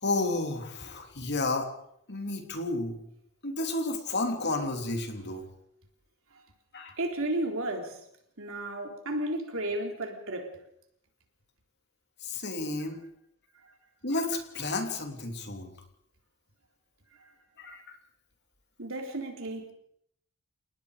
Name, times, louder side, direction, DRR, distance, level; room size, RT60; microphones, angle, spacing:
voice 1, 0.0-1.7 2.1-3.0 3.4-5.5 6.7-6.9 12.2-13.0 14.0-15.7 17.6-18.0, left 2 dB, 50° left, 3.1 m, -31 dB
voice 2, 7.0-8.0 8.4-10.6 18.8-19.7, right 1 dB, 60° right, 3.8 m, -33 dB
29.5 x 19.0 x 5.1 m
head